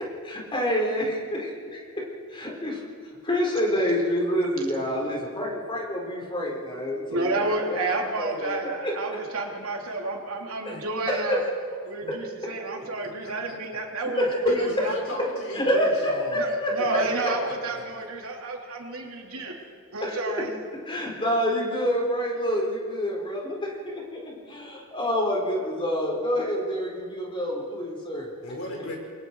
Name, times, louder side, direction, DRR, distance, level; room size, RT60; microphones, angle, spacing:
voice 1, 0.2-1.8 2.3-2.8 3.2-7.8 8.2-8.6 8.8-8.9 10.6-10.8 11.1-11.2 12.1-12.2 14.2-14.6 15.5-17.0 20.0-20.2 20.9-28.3, equal, 25° left, -2 dB, 4.9 m, -27 dB
voice 2, 7.1-11.4 11.8-14.9 16.3-19.5 19.9-20.5, right 3 dB, 70° right, 0 dB, 3.2 m, -30 dB
voice 3, 13.0-13.5 14.5-16.4 16.8-17.8 28.4-29.0, left 1 dB, 65° left, -1 dB, 5.9 m, -37 dB
28.5 x 23.0 x 4.8 m, 2.2 s
head